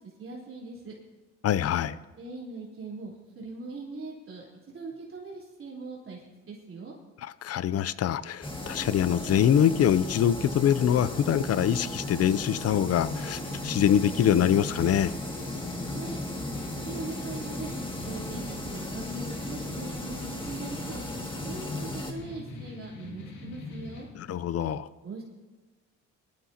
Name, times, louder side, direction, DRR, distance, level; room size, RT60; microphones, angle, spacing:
voice 1, 0.2-0.9 2.1-4.4 4.7-6.9 15.9-16.2 16.5-17.7 18.0-21.0 21.4-24.1 25.0-25.2, right 3 dB, 45° right, -6 dB, 3.4 m, -41 dB
voice 2, 1.4-2.0 7.4-15.1 24.2-24.9, left 9 dB, 55° left, 17 dB, 0.5 m, -24 dB
sound 1, 8.4-22.1, left 1 dB, 15° left, 2.0 m, -36 dB
sound 2, 12.9-24.0, left 3 dB, 75° left, 2.2 m, -43 dB
20.5 x 12.5 x 2.8 m, 1.2 s
cardioid pair, 90°, 30 cm